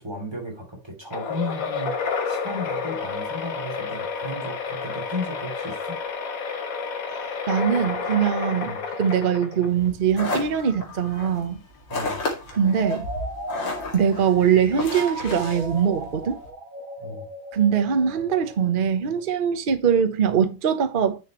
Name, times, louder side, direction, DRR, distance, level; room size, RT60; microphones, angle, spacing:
voice 1, 0.0-6.0 8.6-8.8 11.9-12.3 17.0-17.3, left 1 dB, 10° right, 2.9 m, -34 dB
sound 1, 1.1-9.9, left 5 dB, 50° left, 1.4 m, -30 dB
voice 2, 7.1-8.7 9.0-11.6 12.5-13.1 13.9-16.4 17.5-21.2, right 7 dB, 40° right, 0.7 m, -22 dB
sound 2, 9.7-16.5, left 2 dB, 65° left, 3.0 m, -33 dB
sound 3, 12.7-19.4, right 2 dB, 75° right, 3.2 m, -36 dB
10.0 x 6.5 x 3.1 m
omnidirectional pair, 2.2 m